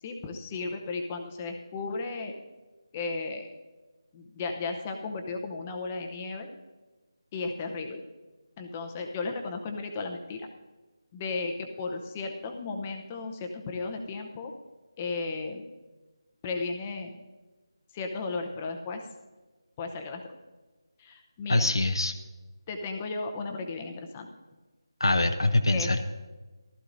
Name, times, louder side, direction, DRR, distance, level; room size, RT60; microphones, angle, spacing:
voice 1, 0.0-2.3 2.9-3.5 4.1-6.5 7.3-8.0 8.6-10.5 11.1-14.5 15.0-15.6 16.4-17.2 17.9-19.0 19.8-20.2 21.0-21.7 22.7-24.3 25.7-25.9, left 3 dB, 15° left, 4 dB, 0.7 m, -35 dB
voice 2, 21.5-22.1 25.0-26.0, left 2 dB, 90° left, 6 dB, 0.7 m, -24 dB
15.0 x 13.0 x 2.6 m, 1.2 s
figure-of-eight pair, 170°, 2 cm